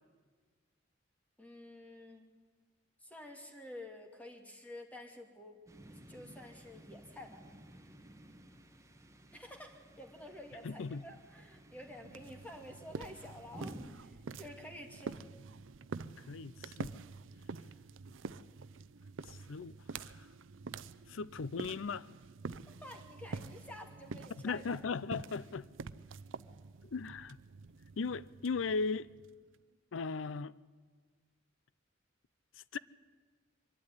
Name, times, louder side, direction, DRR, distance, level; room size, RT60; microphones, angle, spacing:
voice 1, 1.4-2.3 3.0-5.6 5.9-7.5 9.3-15.2 22.8-24.8, left 1 dB, 10° left, 2.3 m, -50 dB
sound 1, 5.7-13.9, right 1 dB, 15° right, 1.7 m, -55 dB
voice 2, 10.6-11.0 16.2-16.9 19.3-20.3 21.1-22.1 24.3-25.7 26.9-27.4 28.0-29.1 29.9-30.5 32.6-32.8, left 4 dB, 90° left, 0.5 m, -38 dB
sound 2, 12.0-29.6, right 4 dB, 80° right, 0.5 m, -47 dB
23.5 x 12.0 x 9.7 m
head